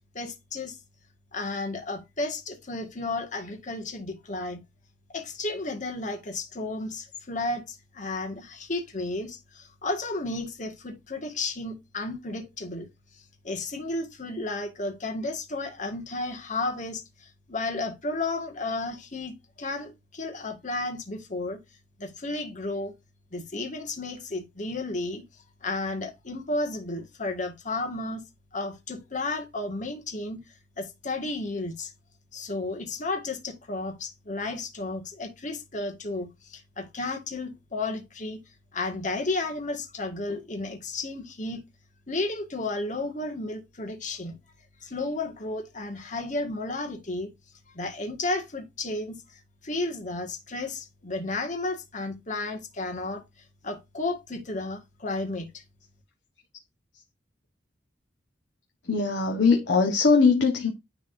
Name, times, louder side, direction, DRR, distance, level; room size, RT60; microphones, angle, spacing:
voice 1, 0.1-0.8 1.3-4.6 5.1-12.9 13.1-21.6 22.0-22.9 23.3-25.2 25.6-28.2 28.5-30.4 30.8-31.9 32.3-38.4 38.7-41.6 42.1-44.4 44.8-47.3 47.7-53.2 53.6-55.6, left 2 dB, 45° left, 1.8 m, -33 dB
voice 2, 58.8-60.7, left 4 dB, 70° left, 1.3 m, -21 dB
10.0 x 4.0 x 2.6 m
head